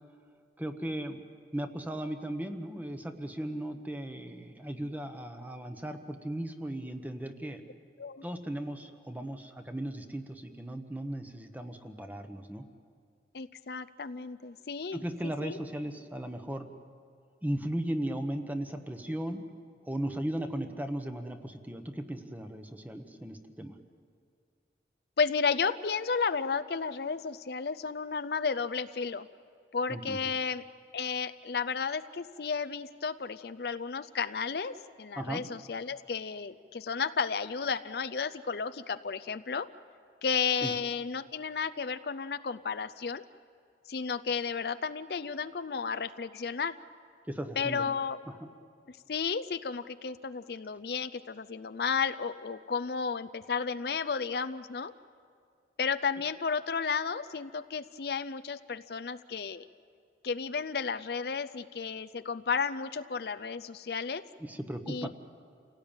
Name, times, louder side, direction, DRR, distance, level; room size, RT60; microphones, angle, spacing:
voice 1, 0.6-1.2 1.5-7.6 8.2-12.6 14.9-16.7 17.4-19.4 19.8-23.7 29.9-30.2 35.1-35.4 40.6-40.7 47.3-47.9 48.4-48.5 64.4-65.1, right 1 dB, 10° right, 7 dB, 1.1 m, -36 dB
voice 2, 13.3-15.6 25.2-29.3 29.7-30.6 30.9-39.7 40.2-43.2 43.9-46.8 47.6-48.2 48.9-54.9 55.8-59.7 60.2-64.2 64.9-65.1, left 5 dB, 60° left, 11 dB, 0.5 m, -33 dB
28.5 x 17.5 x 8.9 m, 2.3 s
head